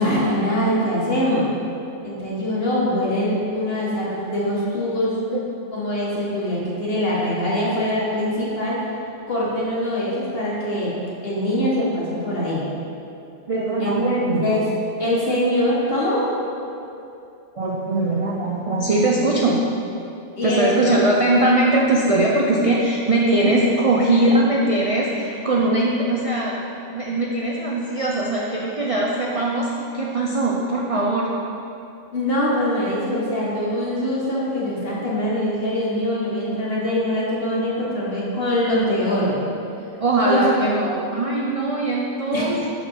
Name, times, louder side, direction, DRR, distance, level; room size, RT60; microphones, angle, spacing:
voice 1, 0.0-1.5 2.0-5.2 5.7-8.8 9.3-10.9 11.2-12.6 13.8-13.9 14.4-14.7 15.0-16.2 20.4-21.0 32.1-39.4 40.2-40.4 42.3-42.5, left 1 dB, 55° left, -6 dB, 1.6 m, -23 dB
voice 2, 13.5-14.5 17.6-19.6 20.4-26.6 26.9-29.7 29.9-31.3 40.0-42.7, right 2 dB, 45° right, -4 dB, 0.5 m, -21 dB
6.1 x 5.4 x 4.5 m, 2.7 s
omnidirectional pair, 1.3 m